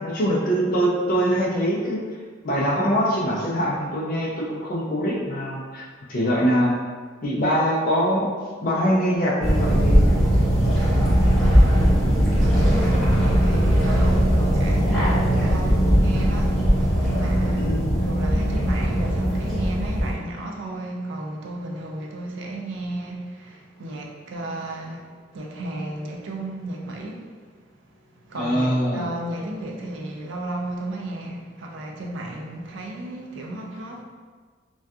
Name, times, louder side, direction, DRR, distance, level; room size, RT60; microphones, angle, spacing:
voice 1, 0.0-2.0 2.4-6.8 7.2-8.3 8.6-10.0 17.5-17.8 28.3-29.1, equal, 45° left, -5 dB, 0.4 m, -23 dB
sound 1, 9.4-20.1, equal, 5° left, 0.9 m, -19 dB
voice 2, 11.4-12.0 12.4-27.5 27.9-34.0, right 1 dB, 70° right, 0 dB, 0.4 m, -34 dB
2.6 x 2.2 x 2.3 m, 1.5 s
head